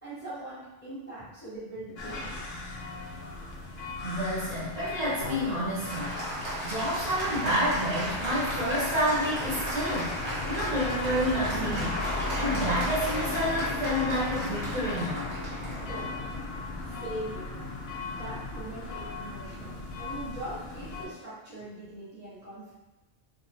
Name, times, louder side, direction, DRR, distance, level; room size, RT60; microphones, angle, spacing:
voice 1, 0.0-2.4 15.8-16.5 16.8-17.7 18.0-22.7, right 1 dB, 15° left, -10 dB, 0.5 m, -41 dB
sound 1, 2.0-21.1, left 2 dB, 70° left, 0.8 m, -36 dB
voice 2, 4.0-6.2 6.6-10.1 10.5-15.3, equal, 40° right, -9 dB, 1.0 m, -29 dB
Applause, 5.2-17.1, right 1 dB, 85° right, 1.2 m, -36 dB
2.7 x 2.0 x 2.7 m, 1.0 s
omnidirectional pair, 1.1 m